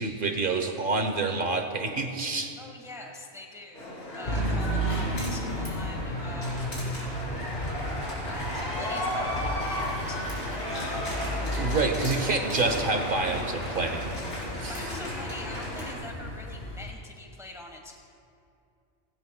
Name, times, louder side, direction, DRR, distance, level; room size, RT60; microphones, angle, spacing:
voice 1, 0.0-2.5 11.6-14.2 14.6-14.8, right 3 dB, 50° right, 5 dB, 1.0 m, -28 dB
voice 2, 2.6-6.7 8.3-11.0 14.7-17.9, left 2 dB, 5° right, 1 dB, 1.1 m, -44 dB
sound 1, 3.7-15.9, left 1 dB, 70° left, 3.6 m, -35 dB
sound 2, 4.2-16.8, equal, 50° left, 2.4 m, -34 dB
17.5 x 16.5 x 2.2 m, 2.5 s
omnidirectional pair, 1.2 m